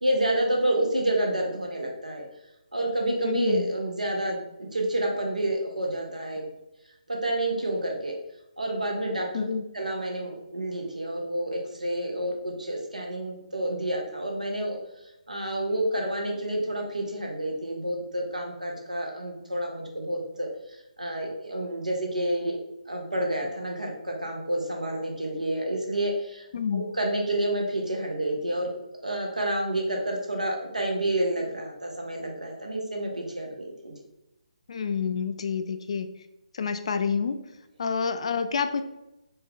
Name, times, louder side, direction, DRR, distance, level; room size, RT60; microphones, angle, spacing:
voice 1, 0.0-2.2 2.7-6.4 7.1-8.1 8.6-9.5 9.7-14.8 15.3-20.5 21.0-22.6 22.9-26.5 26.7-28.7 29.0-33.9, right 1 dB, 85° right, 1 dB, 1.1 m, -29 dB
voice 2, 3.2-3.7 9.3-9.6 26.5-26.8 34.7-36.1 36.5-37.4 37.8-38.8, left 6 dB, 50° left, 9 dB, 0.4 m, -28 dB
4.3 x 2.4 x 3.5 m, 0.88 s
figure-of-eight pair, 145°, 4 cm